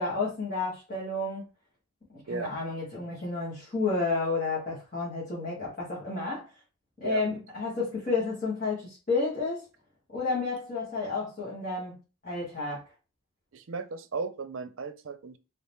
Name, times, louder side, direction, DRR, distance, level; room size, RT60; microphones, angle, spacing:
voice 1, 0.0-1.5 2.1-6.5 7.0-9.7 10.1-12.8, left 3 dB, 40° left, 1.8 m, -31 dB
voice 2, 13.5-15.4, right 4 dB, 75° right, 0.6 m, -35 dB
4.0 x 2.9 x 3.5 m
head